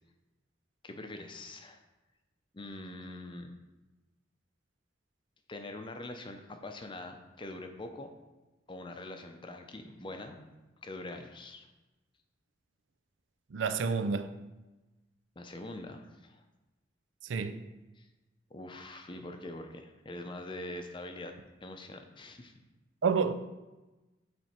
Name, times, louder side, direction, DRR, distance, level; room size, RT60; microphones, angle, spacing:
voice 1, 0.8-1.8 2.5-3.5 5.5-8.1 8.7-10.4 10.8-11.7 15.4-16.4 18.0-18.1 18.5-21.3 21.6-22.5, left 2 dB, 25° left, 0.6 m, -44 dB
voice 2, 13.5-14.3 17.3-17.6 23.0-23.3, right 5 dB, 85° right, 0.5 m, -29 dB
9.1 x 3.4 x 4.3 m
head